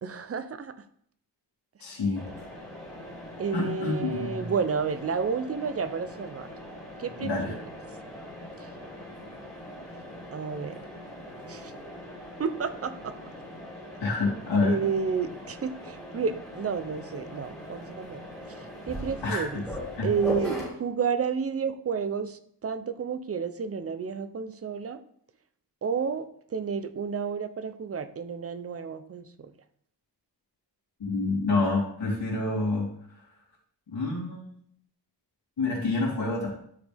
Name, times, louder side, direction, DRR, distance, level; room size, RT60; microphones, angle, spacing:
voice 1, 0.0-0.7 3.4-6.5 7.0-7.7 8.6-8.7 10.3-10.8 11.4-11.7 12.4-13.1 14.6-18.2 18.5-19.7 20.0-25.0 25.8-29.5, right 6 dB, 35° right, 11 dB, 0.6 m, -31 dB
voice 2, 1.8-2.2 3.5-4.5 7.2-7.5 14.0-14.8 19.2-19.5 20.0-20.1 31.0-33.2 33.9-34.5 35.6-36.5, left 3 dB, 75° left, -6 dB, 3.4 m, -28 dB
Mechanisms, 2.2-20.7, left 1 dB, ahead, 3.0 m, -41 dB
12.5 x 5.2 x 3.5 m, 0.66 s
wide cardioid pair, 150°, 42 cm